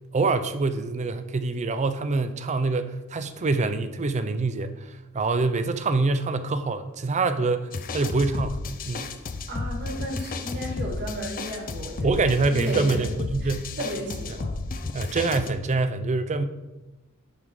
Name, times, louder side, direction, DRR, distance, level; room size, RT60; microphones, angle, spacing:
voice 1, 0.1-9.1 12.0-13.7 14.9-16.4, right 3 dB, 30° right, 11 dB, 0.4 m, -25 dB
sound 1, 7.7-15.5, left 3 dB, 40° left, 0.5 m, -32 dB
voice 2, 9.5-12.1 12.5-13.0 13.4-14.6, equal, 50° right, 1 dB, 1.9 m, -34 dB
11.0 x 3.7 x 4.8 m, 1.1 s
head